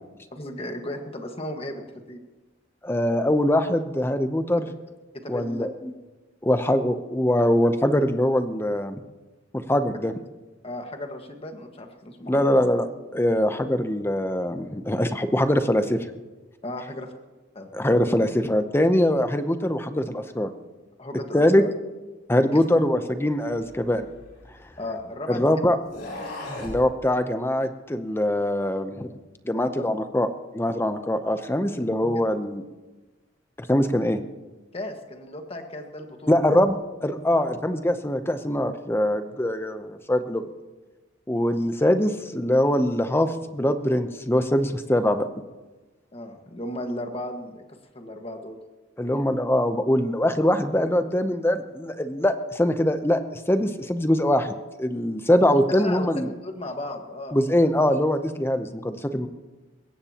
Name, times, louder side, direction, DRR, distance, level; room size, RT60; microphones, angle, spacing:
voice 1, 0.3-2.2 5.1-5.7 10.6-12.6 16.6-17.1 17.5-17.7 21.0-21.7 22.5-22.6 24.8-25.5 29.5-29.7 34.7-36.5 46.1-47.6 47.9-48.6 55.5-57.7, left 1 dB, 30° left, 4 dB, 1.6 m, -35 dB
voice 2, 2.8-4.7 5.3-5.7 6.4-9.0 9.5-10.1 12.2-12.9 13.1-16.1 17.7-20.5 21.3-21.6 22.3-24.1 25.3-25.8 26.6-29.1 29.5-30.3 30.5-32.6 33.6-34.2 36.3-40.4 41.3-45.3 49.0-56.3 57.3-59.3, left 1 dB, 10° left, 9 dB, 0.7 m, -23 dB
sound 1, 23.6-25.1 25.8-26.8, left 1 dB, 55° left, 4.0 m, -38 dB
21.5 x 17.0 x 2.9 m, 1.2 s
head